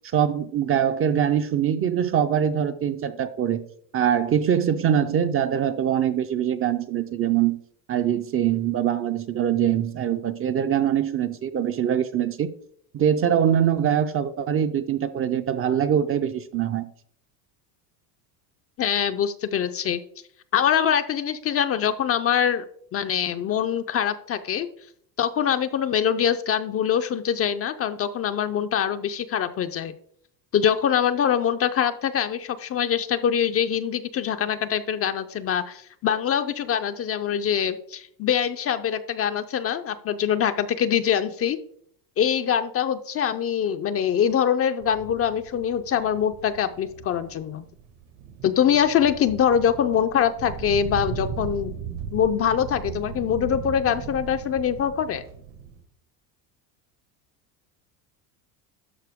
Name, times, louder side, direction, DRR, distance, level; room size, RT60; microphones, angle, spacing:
voice 1, 0.1-3.7 3.9-7.6 7.9-12.5 12.9-16.9, right 9 dB, 30° right, 9 dB, 0.4 m, -23 dB
voice 2, 18.8-20.0 20.5-22.7 22.9-24.7 25.2-29.9 30.5-41.6 42.2-47.7 48.4-51.7 52.1-55.2, left 8 dB, 35° left, 9 dB, 0.4 m, -24 dB
sound 1, 44.8-55.8, right 7 dB, 75° right, 1.7 m, -37 dB
12.5 x 4.4 x 3.5 m, 0.66 s
supercardioid pair, 105°, 46 cm